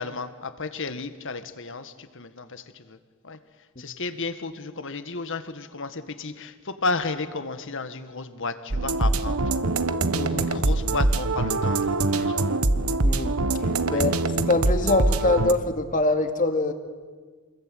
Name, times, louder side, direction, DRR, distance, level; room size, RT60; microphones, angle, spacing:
voice 1, 0.0-3.0 3.2-3.4 3.8-9.5 10.3-12.5 13.9-14.0, left 3 dB, 60° left, 10 dB, 1.8 m, -33 dB
sound 1, 8.7-15.5, right 2 dB, 75° right, 1.3 m, -24 dB
voice 2, 10.1-10.5 13.0-13.3 13.9-16.7, left 2 dB, 35° left, 7 dB, 2.3 m, -24 dB
28.5 x 21.5 x 9.3 m, 1.5 s
head